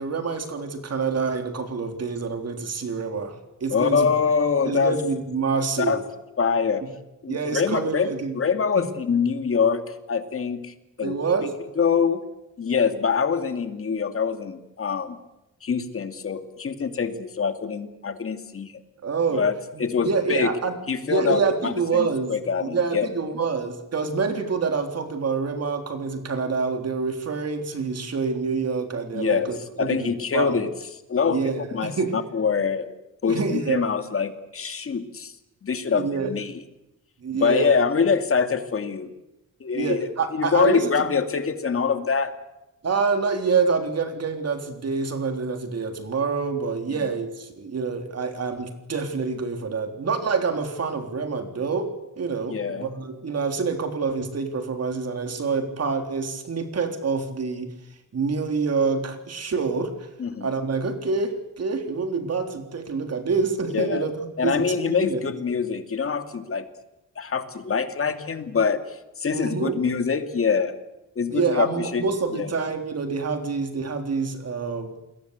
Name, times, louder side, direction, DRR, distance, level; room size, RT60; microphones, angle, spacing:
voice 1, 0.0-4.1 4.6-6.0 7.3-8.4 8.8-8.9 11.0-11.5 19.0-19.4 20.0-20.7 21.1-22.3 22.6-30.7 31.3-32.2 33.3-33.9 35.9-36.3 37.2-37.8 39.7-41.1 42.8-51.9 52.2-57.7 58.1-59.9 60.4-64.6 65.0-65.2 69.3-69.8 71.3-75.0, right 4 dB, 50° right, 7 dB, 3.7 m, -26 dB
voice 2, 3.7-5.0 5.8-6.0 6.4-6.8 7.2-11.2 11.8-12.2 12.6-15.2 15.6-18.7 19.3-19.5 19.8-20.5 20.9-23.1 29.1-29.5 29.8-30.7 31.1-31.4 31.7-32.9 33.2-35.3 35.6-36.5 37.4-39.1 39.6-42.3 46.9-47.1 52.5-52.9 60.2-60.5 63.7-64.1 64.4-66.7 67.2-70.7 71.2-72.0 72.3-72.5, left 6 dB, 45° left, 8 dB, 2.5 m, -24 dB
28.5 x 22.0 x 8.2 m, 0.94 s
wide cardioid pair, 150°, 31 cm